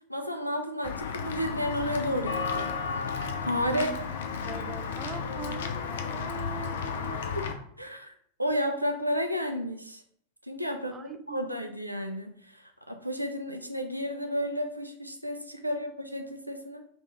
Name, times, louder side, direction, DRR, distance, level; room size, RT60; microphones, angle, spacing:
voice 1, 0.1-2.8 3.1-3.9 7.3-7.5 7.8-10.0 10.4-16.9, equal, 85° right, 6 dB, 0.5 m, -32 dB
Walk footsteps / Bell, 0.8-7.5, left 6 dB, 60° left, 0.5 m, -33 dB
voice 2, 3.7-4.0 4.4-7.3 10.9-11.6 15.6-15.8, right 5 dB, 20° right, 7 dB, 0.4 m, -41 dB
3.5 x 3.0 x 3.8 m, 0.64 s
figure-of-eight pair, 90°, 0 cm